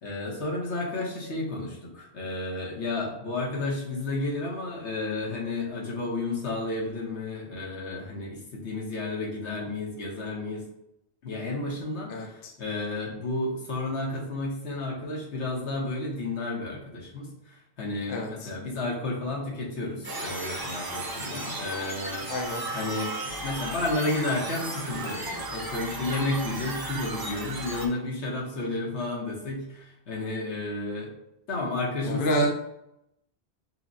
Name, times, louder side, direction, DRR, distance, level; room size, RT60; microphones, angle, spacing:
voice 1, 0.0-10.6 11.2-22.3 22.7-31.1 31.5-32.5, left 2 dB, 80° left, -3 dB, 1.3 m, -32 dB
voice 2, 12.1-12.5 18.1-18.5 22.3-22.6 32.0-32.5, right 1 dB, 60° left, 0 dB, 0.7 m, -28 dB
sound 1, 20.0-27.9, right 2 dB, 35° right, 0.3 m, -35 dB
5.6 x 2.1 x 2.6 m, 0.84 s
omnidirectional pair, 1.1 m